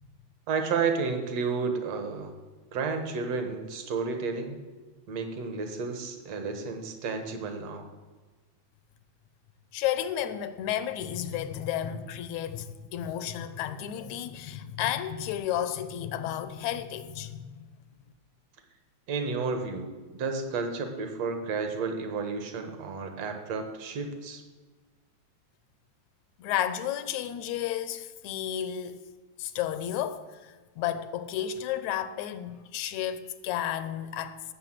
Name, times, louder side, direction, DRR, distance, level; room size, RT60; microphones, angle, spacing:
voice 1, 0.5-2.3 2.7-4.6 5.1-7.9 19.1-24.4, right 4 dB, 65° right, 2.5 m, -31 dB
voice 2, 9.7-17.7 26.4-29.0 29.4-34.4, left 10 dB, 80° left, 2.1 m, -32 dB
17.0 x 6.9 x 7.6 m
omnidirectional pair, 3.3 m